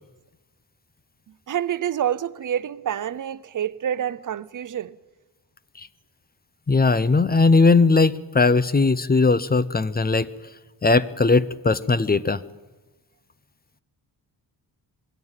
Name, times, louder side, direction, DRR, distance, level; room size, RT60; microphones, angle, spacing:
voice 1, 1.5-5.0, right 10 dB, 45° right, 0.7 m, -27 dB
voice 2, 6.7-10.3 10.8-12.4, left 3 dB, 20° left, 0.7 m, -19 dB
21.5 x 16.5 x 9.0 m
wide cardioid pair, 130°, 42 cm